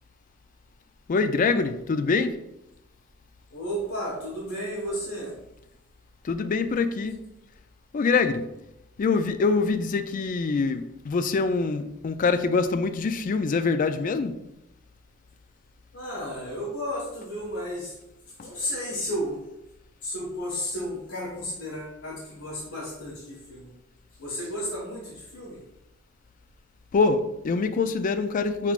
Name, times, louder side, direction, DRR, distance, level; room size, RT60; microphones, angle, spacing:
voice 1, 1.1-2.4 6.2-7.2 7.9-8.4 9.0-14.4 26.9-28.7, left 4 dB, 40° left, 0.3 m, -24 dB
voice 2, 3.5-5.3 15.9-17.9 18.4-19.4 20.0-23.7 24.2-25.6, equal, 75° left, 1.3 m, -33 dB
5.8 x 3.6 x 2.4 m
head